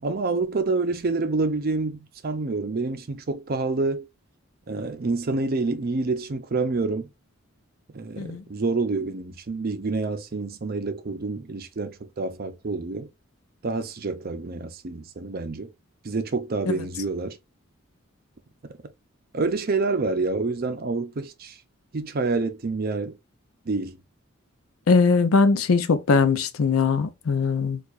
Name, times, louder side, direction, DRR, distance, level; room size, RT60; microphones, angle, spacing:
voice 1, 0.0-4.1 4.7-7.1 7.9-13.1 13.6-15.7 16.0-17.4 19.3-21.6 21.9-23.2 23.7-24.0, right 3 dB, 45° right, 0.5 m, -27 dB
voice 2, 24.9-27.8, left 4 dB, 85° left, 0.5 m, -20 dB
4.5 x 2.4 x 2.4 m
head